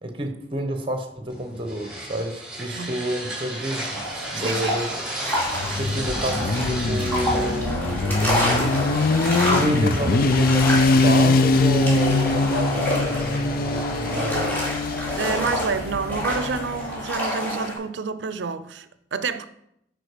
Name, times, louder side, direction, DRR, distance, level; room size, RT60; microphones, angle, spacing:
voice 1, 0.0-4.9 5.7-8.7 9.5-14.6, right 1 dB, 30° right, 1.0 m, -29 dB
sound 1, 1.3-8.8, right 1 dB, 5° right, 2.9 m, -34 dB
sound 2, 3.7-17.7, left 1 dB, 10° left, 2.7 m, -28 dB
voice 2, 4.3-4.8 15.1-19.5, right 5 dB, 90° right, 0.5 m, -28 dB
Motorcycle, 5.4-17.1, left 3 dB, 55° left, 0.5 m, -23 dB
9.1 x 4.5 x 5.1 m
head